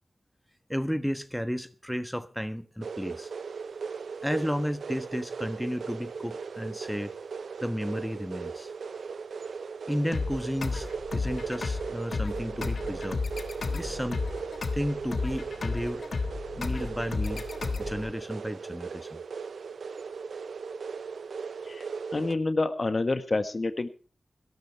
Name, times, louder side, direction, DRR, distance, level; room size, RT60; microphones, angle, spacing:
voice 1, 0.7-3.3 4.2-7.1 7.6-8.7 9.9-13.2 13.7-14.3 14.7-16.0 16.6-17.5 17.8-19.2, equal, ahead, 11 dB, 1.3 m, -33 dB
sound 1, 2.8-22.4, right 5 dB, 85° right, 0.7 m, -38 dB
sound 2, 10.1-18.1, left 4 dB, 70° left, 1.5 m, -33 dB
voice 2, 22.1-23.9, left 3 dB, 50° left, 10 dB, 1.5 m, -28 dB
17.5 x 12.5 x 4.6 m, 0.35 s
cardioid pair, 45°, 0 cm